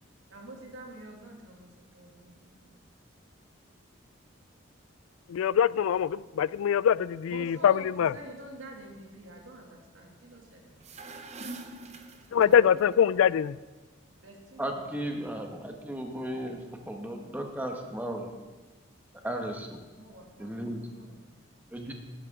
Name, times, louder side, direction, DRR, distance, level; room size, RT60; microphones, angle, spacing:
voice 1, 0.3-2.7 7.3-10.8 12.3-13.3 14.1-15.1 19.9-21.2, right 1 dB, 70° right, 0 dB, 2.4 m, -47 dB
voice 2, 5.3-7.7 8.0-8.1 12.3-13.5, left 8 dB, 85° left, 21 dB, 0.3 m, -23 dB
Liquid Destiny Fart, 10.8-12.8, right 2 dB, 30° right, 0.7 m, -44 dB
voice 3, 14.6-18.3 19.2-19.8 20.4-20.8 21.7-21.9, right 1 dB, 10° right, 2 dB, 1.0 m, -35 dB
12.5 x 11.5 x 3.7 m, 1.2 s
head